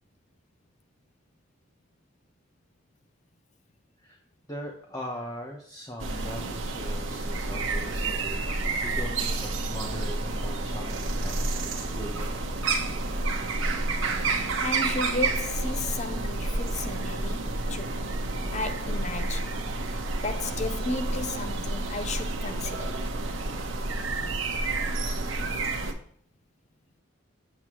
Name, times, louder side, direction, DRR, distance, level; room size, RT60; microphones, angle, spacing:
voice 1, 4.5-12.5, equal, 20° left, 1.0 m, -40 dB
sound 1, 6.0-25.9, right 2 dB, 75° right, 1.1 m, -30 dB
voice 2, 14.6-18.0 18.3-19.6 19.9-23.0, left 3 dB, 35° left, 0.6 m, -34 dB
8.0 x 7.8 x 3.0 m
head